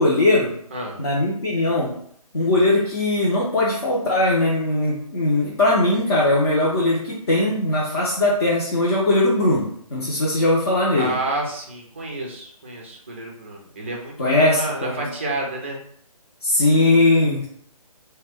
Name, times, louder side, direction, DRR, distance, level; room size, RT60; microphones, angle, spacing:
voice 1, 0.0-0.6 1.0-2.0 2.3-11.1 14.2-15.0 16.4-17.5, left 2 dB, 45° left, -7 dB, 0.6 m, -20 dB
voice 2, 11.0-15.8, right 2 dB, 20° right, -1 dB, 0.4 m, -30 dB
2.3 x 2.2 x 3.4 m, 0.63 s
figure-of-eight pair, 145°, 19 cm